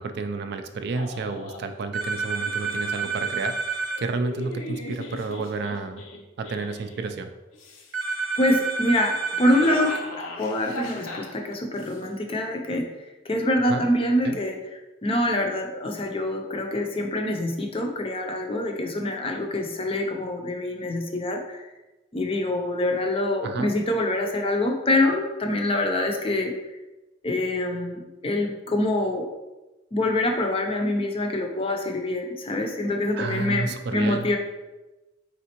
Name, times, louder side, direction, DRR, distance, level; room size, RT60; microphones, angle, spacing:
voice 1, 0.0-6.0 6.4-7.3 13.7-13.9 14.2-14.4 23.4-23.7 33.1-34.3, right 4 dB, 55° right, 8 dB, 0.3 m, -31 dB
sound 1, 0.9-1.7 2.4-3.0 3.9-7.1 7.5-8.1 9.3-12.0, left 2 dB, 85° left, 0.6 m, -39 dB
sound 2, 1.9-4.0 7.9-10.0, right 4 dB, 75° right, 0.7 m, -29 dB
voice 2, 8.4-12.9 13.2-14.6 15.0-21.6 22.1-26.5 27.2-29.3 29.9-34.4, left 1 dB, 30° left, 3 dB, 0.4 m, -25 dB
4.1 x 3.5 x 2.9 m, 1.1 s
head